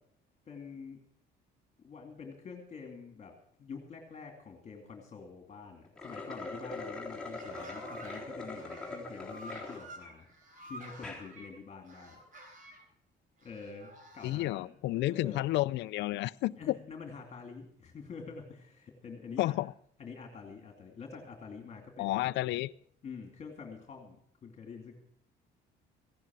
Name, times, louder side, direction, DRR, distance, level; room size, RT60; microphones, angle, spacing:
voice 1, 0.5-1.0 1.8-10.3 10.7-12.2 13.4-15.4 16.5-19.6 20.0-22.3 23.0-24.2 24.4-24.9, left 5 dB, 35° left, 3 dB, 2.5 m, -46 dB
sound 1, 5.9-9.8 10.3-10.4 10.9-11.2, left 2 dB, 5° left, 3.8 m, -42 dB
sound 2, 7.1-8.2 8.5-11.5 11.9-12.8 13.4-14.5, right 1 dB, 45° right, 4.0 m, -51 dB
voice 2, 14.2-16.8 19.4-19.7 22.0-22.7, left 17 dB, 70° left, 15 dB, 0.5 m, -31 dB
16.0 x 11.0 x 6.1 m, 0.66 s
cardioid pair, 115°, 19 cm